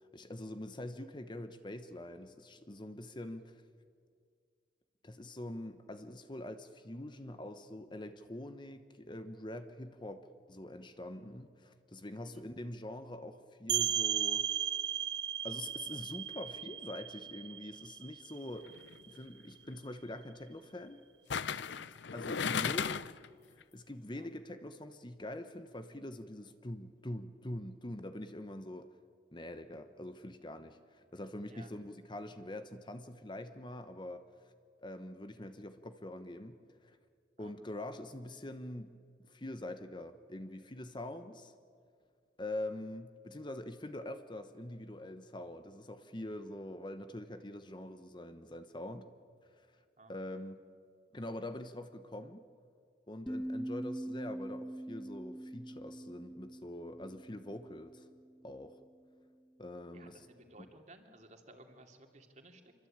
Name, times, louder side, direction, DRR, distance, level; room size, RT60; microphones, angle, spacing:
voice 1, 0.1-3.6 5.0-14.5 15.4-18.8 19.1-21.0 22.1-23.0 23.5-28.9 29.3-34.2 34.8-37.0 37.4-39.0 39.2-41.5 42.4-49.1 50.1-50.6 51.1-52.4 53.1-58.1 58.4-58.8 59.6-60.1 60.6-60.7, left 1 dB, 25° left, 9 dB, 1.0 m, -44 dB
sound 1, 13.7-19.2, right 10 dB, 75° right, 0.9 m, -36 dB
sound 2, 18.7-19.0 21.3-23.3 23.6-23.7, left 7 dB, 80° left, 0.6 m, -35 dB
sound 3, 53.3-58.4, right 1 dB, 5° left, 1.3 m, -43 dB
voice 2, 59.9-62.7, right 2 dB, 40° right, 4 dB, 2.7 m, -57 dB
27.0 x 24.0 x 8.9 m, 2.2 s
head